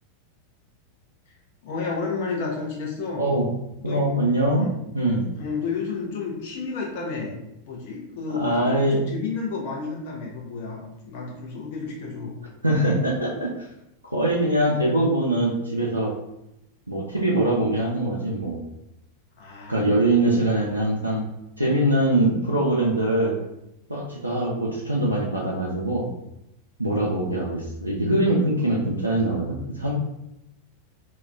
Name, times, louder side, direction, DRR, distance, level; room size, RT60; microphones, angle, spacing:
voice 1, 1.6-3.3 3.8-4.0 4.5-4.8 5.3-12.4 19.4-20.4, left 4 dB, 50° left, -2 dB, 0.7 m, -31 dB
voice 2, 3.8-4.7 4.9-5.3 8.3-9.0 12.6-13.7 14.0-16.1 16.9-18.6 19.7-21.2 21.6-23.4 23.9-26.1 26.8-30.0, right 1 dB, 85° right, -2 dB, 0.4 m, -23 dB
2.4 x 2.1 x 3.4 m, 0.86 s
figure-of-eight pair, 90°, 0 cm